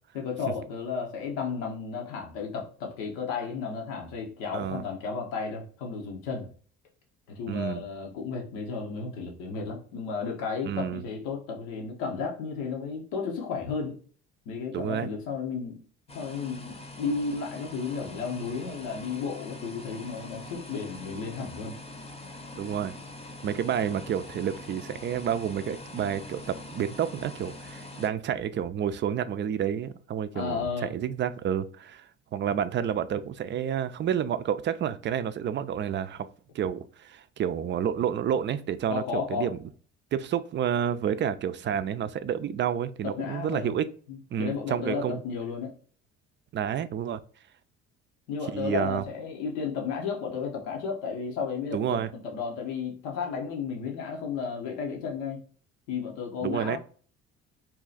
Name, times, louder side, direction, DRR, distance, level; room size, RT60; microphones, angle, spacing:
voice 1, 0.1-6.5 7.3-14.0 14.5-15.8 16.1-21.8 30.3-30.9 38.9-39.5 43.0-43.7 44.1-45.7 48.3-55.4 55.9-56.8, left 5 dB, 85° left, 1 dB, 0.9 m, -33 dB
voice 2, 4.5-4.8 7.5-7.8 10.6-11.0 14.7-15.1 22.6-22.9 23.4-36.3 36.5-39.6 40.1-43.9 44.3-45.2 46.5-47.2 48.5-49.0 51.7-52.1 56.4-56.8, right 9 dB, 40° right, 13 dB, 0.4 m, -29 dB
sound 1, 16.1-28.1, left 2 dB, 20° left, 0.7 m, -43 dB
2.8 x 2.4 x 3.9 m, 0.43 s
supercardioid pair, 70°, 30 cm